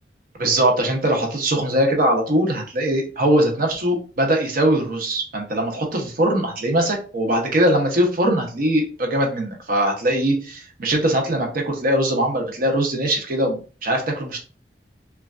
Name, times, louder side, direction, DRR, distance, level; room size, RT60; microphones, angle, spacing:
voice 1, 0.4-14.4, right 1 dB, 50° right, 2 dB, 0.7 m, -21 dB
3.1 x 2.3 x 2.4 m, 0.37 s
head